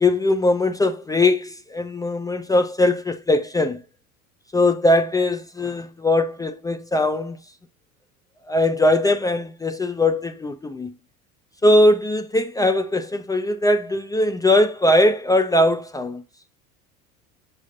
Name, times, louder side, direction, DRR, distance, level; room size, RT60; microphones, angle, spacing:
voice 1, 0.0-3.8 4.5-7.4 8.5-10.9 11.6-16.2, left 1 dB, 10° left, 0.4 m, -20 dB
7.0 x 5.4 x 2.6 m
figure-of-eight pair, 75°, 45 cm